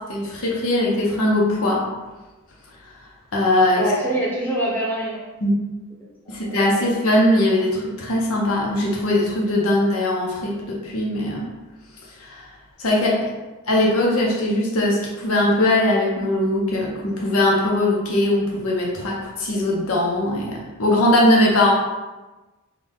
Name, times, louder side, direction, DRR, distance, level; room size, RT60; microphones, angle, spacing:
voice 1, 0.1-1.8 3.3-3.9 5.4-5.5 6.3-11.5 12.2-12.4 12.8-13.1 13.7-21.7, left 1 dB, 65° left, -3 dB, 0.7 m, -20 dB
voice 2, 3.8-5.2 6.2-6.8 12.9-13.2, right 1 dB, 10° left, -8 dB, 0.9 m, -26 dB
3.3 x 2.1 x 3.7 m, 1.1 s
head